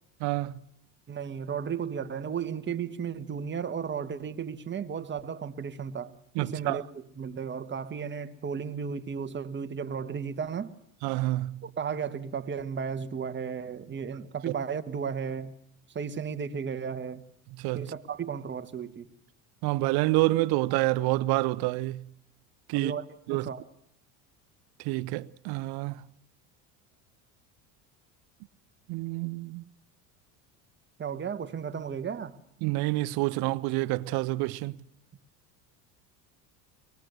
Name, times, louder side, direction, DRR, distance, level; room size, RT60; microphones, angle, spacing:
voice 1, 0.2-0.5 6.3-6.8 11.0-11.6 17.6-17.9 19.6-22.0 22.7-22.9 23.3-23.5 24.8-26.0 28.9-29.6 32.6-34.8, right 19 dB, 65° right, 0.8 m, -28 dB
voice 2, 1.1-6.1 6.4-6.8 7.2-10.7 11.6-15.5 15.9-17.2 17.7-19.1 22.7-23.6 31.0-32.4, right 6 dB, 25° right, 1.4 m, -34 dB
23.0 x 20.0 x 8.0 m
supercardioid pair, 100°, 40 cm